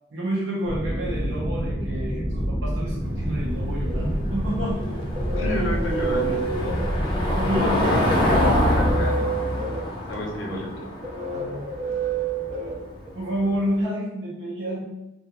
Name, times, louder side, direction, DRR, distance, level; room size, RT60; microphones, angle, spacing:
voice 1, 0.1-4.8 7.4-8.3 10.5-10.6 11.3-11.7 13.1-14.9, equal, 75° right, -5 dB, 0.6 m, -29 dB
sound 1, 0.6-9.0, equal, 15° right, 0.7 m, -28 dB
Car passing by / Engine, 3.0-13.7, left 1 dB, 25° left, 0.5 m, -26 dB
sound 2, 4.8-13.5, right 4 dB, 35° right, 0.3 m, -31 dB
voice 2, 5.4-6.7 7.0-7.2 7.5-9.6 10.1-10.9, left 1 dB, 85° left, -1 dB, 0.7 m, -31 dB
2.3 x 2.3 x 2.9 m, 0.96 s
head